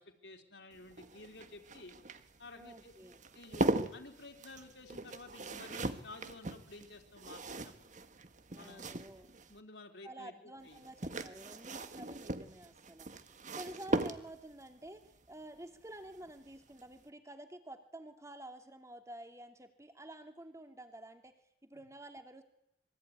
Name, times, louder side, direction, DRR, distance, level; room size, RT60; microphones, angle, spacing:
voice 1, 0.0-1.9 2.4-2.9 3.3-7.7 8.6-8.9 9.5-10.8 13.5-13.6 21.7-21.8, left 2 dB, 70° left, 3 dB, 3.8 m, -53 dB
sound 1, 0.7-9.6 10.7-14.6 16.2-16.5 16.8-16.9, right 2 dB, 45° right, 1.6 m, -39 dB
voice 2, 2.5-3.2 8.5-9.3 10.0-22.4, right 1 dB, 15° right, 7 dB, 2.7 m, -50 dB
26.5 x 23.0 x 9.6 m, 0.78 s
head